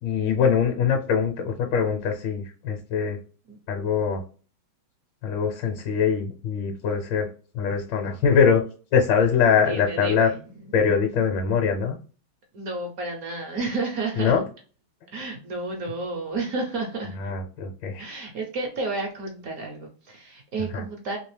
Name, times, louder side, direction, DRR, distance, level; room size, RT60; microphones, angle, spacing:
voice 1, 0.0-3.2 3.7-4.2 5.2-7.3 7.5-8.6 8.9-10.3 10.7-12.0 14.2-14.4 17.2-18.1 20.7-20.8, left 6 dB, 70° left, 3 dB, 1.2 m, -23 dB
voice 2, 9.7-10.3 10.7-10.8 12.5-14.4 15.1-17.2 18.0-21.2, right 3 dB, 65° right, 2 dB, 0.9 m, -31 dB
3.3 x 2.8 x 3.2 m, 0.39 s
omnidirectional pair, 2.3 m